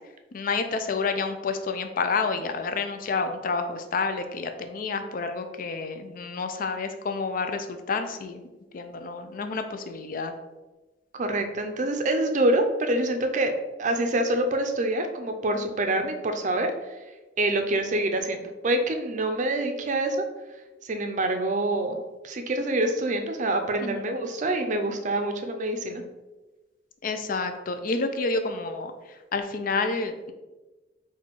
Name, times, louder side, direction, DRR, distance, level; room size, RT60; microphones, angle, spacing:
voice 1, 0.3-8.4 8.7-10.3 23.8-24.1 27.0-28.9 29.3-30.3, left 4 dB, 50° left, 8 dB, 0.4 m, -29 dB
voice 2, 11.1-13.5 13.8-16.7 17.4-18.4 18.6-20.2 20.8-22.0 22.2-26.0, right 1 dB, 45° right, 6 dB, 0.5 m, -26 dB
4.2 x 2.3 x 4.5 m, 1.1 s
head